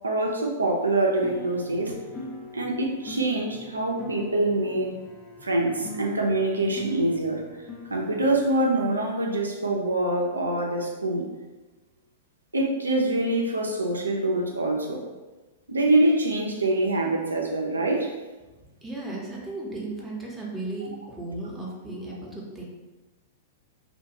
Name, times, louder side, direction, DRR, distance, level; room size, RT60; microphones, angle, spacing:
voice 1, 0.0-2.0 2.5-4.9 5.4-7.4 7.9-11.3 12.5-15.0 15.7-18.1, right 2 dB, 85° right, 0 dB, 0.4 m, -25 dB
sound 1, 1.2-8.6, left 2 dB, 35° left, 0.4 m, -42 dB
voice 2, 18.6-22.6, right 2 dB, 5° right, -4 dB, 0.7 m, -35 dB
2.5 x 2.2 x 2.8 m, 1.2 s
figure-of-eight pair, 105°, 0 cm